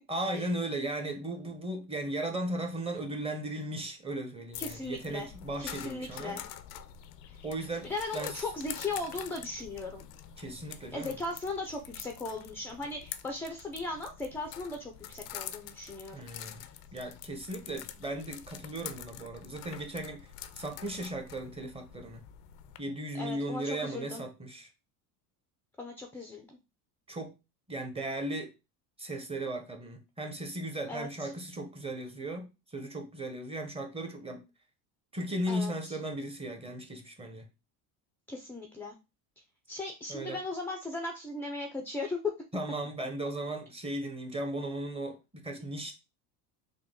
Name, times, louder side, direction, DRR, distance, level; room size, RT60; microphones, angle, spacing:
voice 1, 0.1-6.4 7.4-8.4 10.4-11.2 16.1-16.6 16.9-20.3 20.6-22.2 22.8-24.7 27.1-27.3 27.7-28.5 29.0-34.4 35.1-37.5 40.1-40.4 42.5-45.9, right 1 dB, 10° right, 0.8 m, -36 dB
sound 1, 4.5-22.8, left 11 dB, 90° left, 0.6 m, -46 dB
voice 2, 4.6-5.3 5.6-6.4 7.3-7.4 7.8-10.1 10.9-16.2 23.1-24.2 25.8-26.6 30.9-31.3 35.5-36.0 38.3-39.0 39.7-42.2, left 2 dB, 5° left, 0.4 m, -38 dB
3.7 x 2.2 x 3.7 m
supercardioid pair, 105°, 46 cm